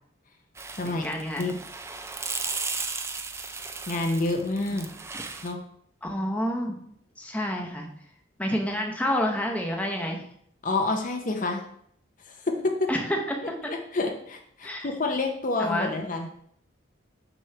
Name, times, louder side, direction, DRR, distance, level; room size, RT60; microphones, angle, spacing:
sound 1, 0.6-5.5, right 4 dB, 15° right, 0.3 m, -35 dB
voice 1, 0.8-1.5 6.0-6.8 7.2-7.9 8.4-10.2 12.9-13.5 14.6-14.9 15.6-15.9, equal, 5° left, 1 dB, 0.8 m, -29 dB
voice 2, 3.9-4.9 5.4-5.6 10.6-11.6 12.2-12.7 13.7-16.3, left 2 dB, 40° left, 3 dB, 0.6 m, -28 dB
6.2 x 3.1 x 5.6 m, 0.69 s
head